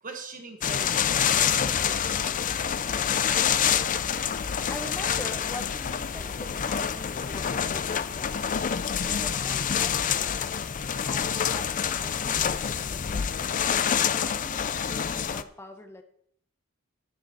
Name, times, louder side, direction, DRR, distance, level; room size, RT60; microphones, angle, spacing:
voice 1, 0.0-2.6 4.5-4.6, right 4 dB, 40° right, 5 dB, 1.2 m, -43 dB
sound 1, 0.6-15.4, left 8 dB, 40° left, 0.5 m, -27 dB
voice 2, 3.5-3.9 4.2-8.4 9.0-10.5 11.0-13.5 14.0-16.0, left 1 dB, 10° left, 5 dB, 1.1 m, -43 dB
11.5 x 10.5 x 4.3 m, 0.67 s
head